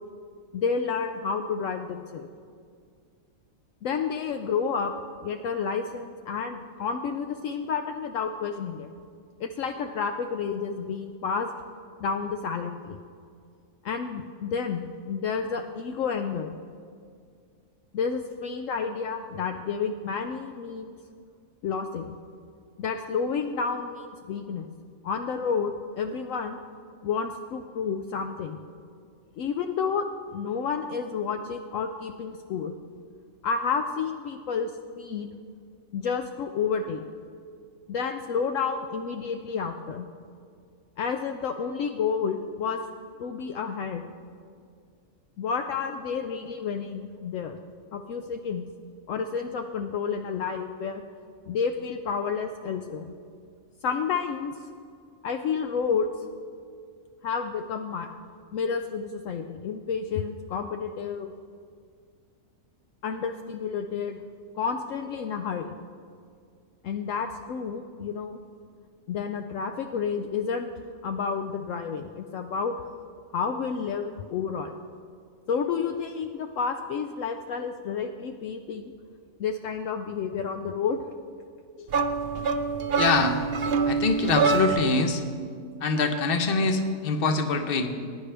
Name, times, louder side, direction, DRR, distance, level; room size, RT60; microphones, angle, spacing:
voice 1, 0.5-2.3 3.8-4.9 5.2-8.9 9.4-11.5 12.0-13.0 13.8-16.6 17.9-21.0 21.6-22.2 22.8-24.7 25.0-26.6 27.0-28.6 29.4-30.0 30.3-32.7 33.4-34.7 35.0-35.3 35.9-37.0 37.9-40.1 41.0-42.8 43.2-44.0 45.4-47.6 47.9-48.6 49.1-51.0 51.5-53.1 53.8-54.5 55.2-56.1 57.2-58.1 58.5-61.3 63.0-64.2 64.6-65.7 66.8-68.4 69.1-70.7 71.0-72.8 73.3-74.8 75.5-78.9 79.4-81.0, left 6 dB, 70° left, 6 dB, 0.9 m, -30 dB
sound 1, 81.9-85.0, right 5 dB, 55° right, 0.7 m, -25 dB
voice 2, 83.0-83.4 83.9-85.2 85.8-87.9, left 4 dB, 45° left, 7 dB, 1.0 m, -24 dB
20.0 x 10.0 x 3.4 m, 2.2 s
omnidirectional pair, 1.4 m